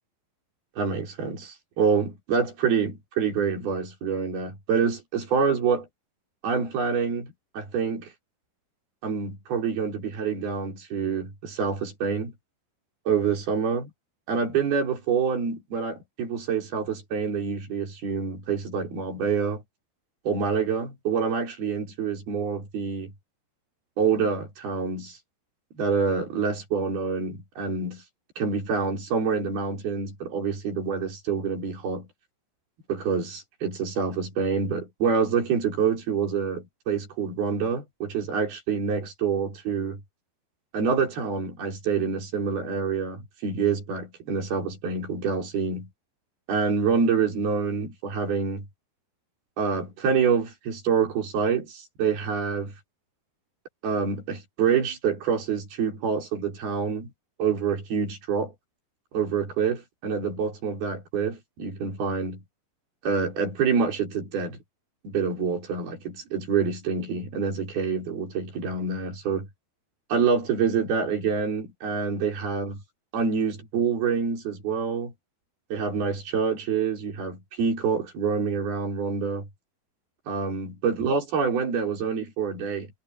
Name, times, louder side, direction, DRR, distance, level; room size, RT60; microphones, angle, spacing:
voice 1, 0.8-5.9 6.4-8.1 9.0-12.3 13.1-13.8 14.3-19.6 20.2-23.1 24.0-25.2 25.7-28.0 28.4-32.1 32.9-40.0 40.7-45.9 46.5-48.6 49.6-52.7 53.8-57.1 57.4-58.5 59.1-62.4 63.0-64.6 65.0-69.4 70.1-72.8 73.1-75.1 75.7-79.5 80.3-82.9, right 6 dB, 85° right, 6.7 m, -26 dB
omnidirectional pair, 4.3 m